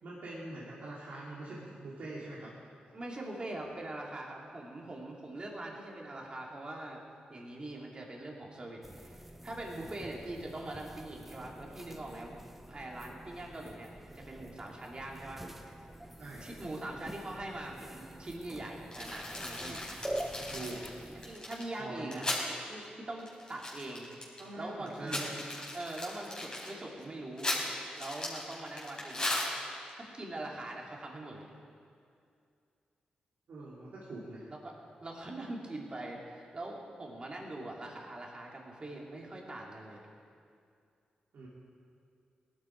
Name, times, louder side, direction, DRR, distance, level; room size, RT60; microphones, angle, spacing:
voice 1, 0.0-2.5 16.2-16.5 20.4-20.8 21.8-22.2 24.4-25.3 33.5-34.5 41.3-41.5, right 2 dB, 75° right, -7 dB, 2.9 m, -43 dB
voice 2, 2.9-7.0 7.3-12.4 12.7-15.8 16.4-19.8 21.2-22.2 22.7-24.1 24.5-25.4 25.7-27.5 28.0-31.5 34.5-34.8 35.0-40.1, right 1 dB, 35° right, -1 dB, 2.9 m, -43 dB
sound 1, 8.8-21.4, right 1 dB, 5° right, 0.8 m, -46 dB
sound 2, 18.9-22.5 22.8-22.9 23.2-24.5 24.9-29.9, left 1 dB, 25° left, 4.4 m, -37 dB
19.5 x 12.5 x 4.7 m, 2.4 s
cardioid pair, 85°, 3 cm